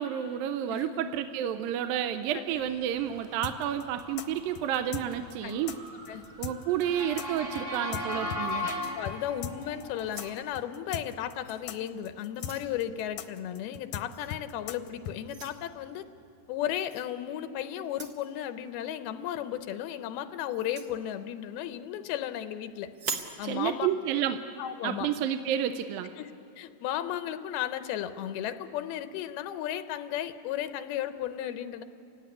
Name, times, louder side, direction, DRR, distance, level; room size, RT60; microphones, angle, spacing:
voice 1, 0.0-5.8 6.4-8.7 23.4-24.4 24.8-26.1, right 10 dB, 75° right, 9 dB, 2.4 m, -30 dB
voice 2, 0.7-1.0 2.3-2.6 5.4-5.6 6.1-6.2 8.7-16.0 16.5-22.9 23.4-23.9 24.6-25.1 26.2-26.3 26.6-31.8, left 11 dB, 90° left, 10 dB, 2.8 m, -35 dB
Motor vehicle (road) / Siren, 3.0-10.3, left 2 dB, 30° right, 1.3 m, -38 dB
sound 1, 3.4-8.8 9.1-9.2 9.4-15.2, left 9 dB, 70° left, 1.9 m, -38 dB
sound 2, 8.4-9.5 10.0-10.6 11.4-11.6 12.0-12.7 14.1-14.4 15.3-15.6 16.9-17.1 17.8-18.3 20.5-20.9 22.9-23.4, right 5 dB, 60° right, 1.2 m, -41 dB
29.0 x 16.5 x 9.7 m, 2.6 s
omnidirectional pair, 4.3 m